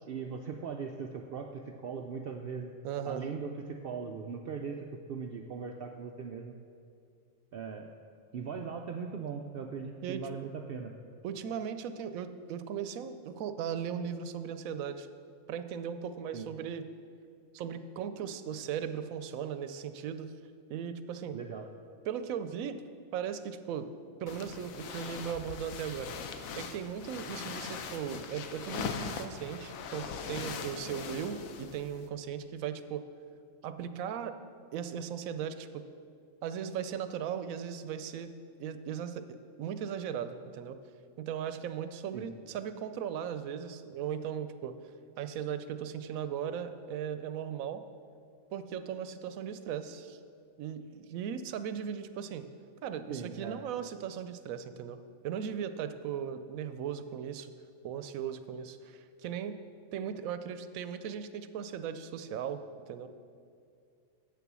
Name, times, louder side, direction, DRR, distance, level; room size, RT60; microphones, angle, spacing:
voice 1, 0.1-2.7 3.0-6.5 7.5-7.9 8.3-10.9 16.3-16.5 21.3-21.7 42.1-42.3 53.1-53.6, right 6 dB, 65° right, 3 dB, 0.6 m, -39 dB
voice 2, 2.8-3.2 9.2-9.4 10.0-10.3 11.2-15.1 15.5-16.8 17.5-20.3 20.7-21.4 22.0-22.8 23.1-23.9 24.2-26.1 26.6-33.0 33.6-34.4 34.7-35.8 36.4-38.3 38.6-40.8 41.2-44.8 45.2-47.8 48.5-50.2 50.6-52.4 52.8-55.0 55.2-57.5 57.8-59.6 59.9-62.6 62.9-63.1, right 8 dB, 85° right, 11 dB, 1.0 m, -37 dB
sound 1, 24.3-32.1, left 6 dB, 85° left, 1.1 m, -41 dB
8.0 x 6.9 x 6.1 m, 2.4 s
omnidirectional pair, 1.4 m